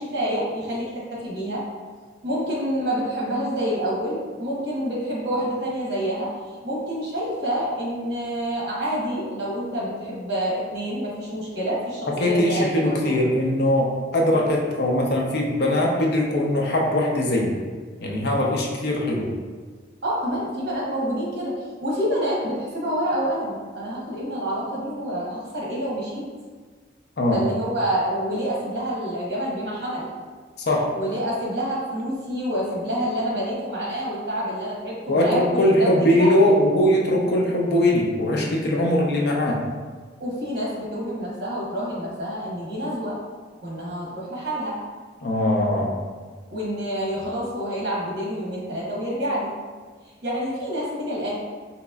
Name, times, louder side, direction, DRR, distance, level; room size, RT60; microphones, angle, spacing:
voice 1, 0.0-1.7 2.2-6.4 6.6-13.1 20.0-26.3 27.3-30.1 30.9-36.6 40.2-43.2 43.6-44.8 46.5-49.5 50.2-51.4, equal, 60° right, -5 dB, 1.0 m, -27 dB
voice 2, 12.2-17.6 18.0-19.3 27.2-27.4 30.7-30.8 35.1-39.6 45.2-45.9, left 1 dB, 60° left, -1 dB, 0.5 m, -21 dB
3.9 x 2.9 x 2.3 m, 1.5 s
head